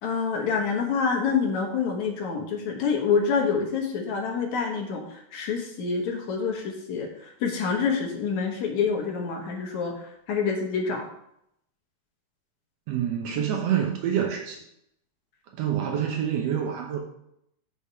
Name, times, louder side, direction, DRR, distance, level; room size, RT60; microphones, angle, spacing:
voice 1, 0.0-5.0 5.3-7.1 7.4-9.9 10.3-11.0, left 5 dB, 60° left, 1 dB, 2.3 m, -26 dB
voice 2, 12.9-14.6 15.6-17.0, right 9 dB, 90° right, 2 dB, 1.4 m, -27 dB
8.7 x 5.4 x 4.8 m, 0.75 s
omnidirectional pair, 4.2 m